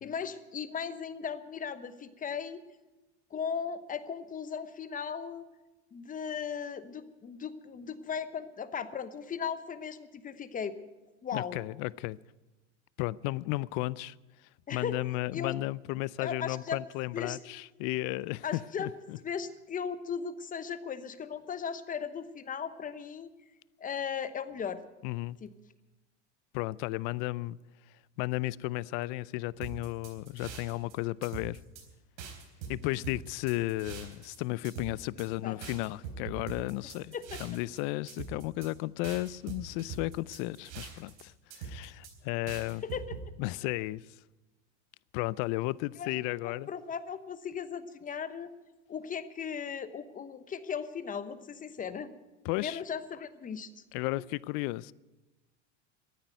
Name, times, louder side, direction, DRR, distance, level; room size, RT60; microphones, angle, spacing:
voice 1, 0.0-2.6 3.3-5.5 5.9-10.8 11.2-11.6 14.7-15.0 15.3-15.6 16.2-16.8 17.1-17.4 18.4-18.9 19.2-23.3 23.8-24.8 25.4-25.5 35.4-35.6 37.1-37.4 42.8-43.2 46.0-46.1 46.4-48.5 48.9-52.1 52.6-53.8, left 7 dB, 25° left, 0.9 m, -37 dB
voice 2, 11.3-12.2 13.0-14.1 14.7-19.2 25.0-25.4 26.5-27.6 28.2-31.6 32.7-37.1 37.4-42.8 43.4-44.0 45.1-46.7 52.4-52.8 53.9-54.9, left 19 dB, 60° left, 0.5 m, -34 dB
sound 1, 29.6-30.9 31.2-31.8 32.2-34.4 34.6-35.3 35.6-37.8 38.1-38.7 39.0-41.2 41.5-42.1 42.5-43.2, right 6 dB, 90° right, 3.9 m, -43 dB
13.5 x 9.5 x 9.2 m
supercardioid pair, 120°, 35 cm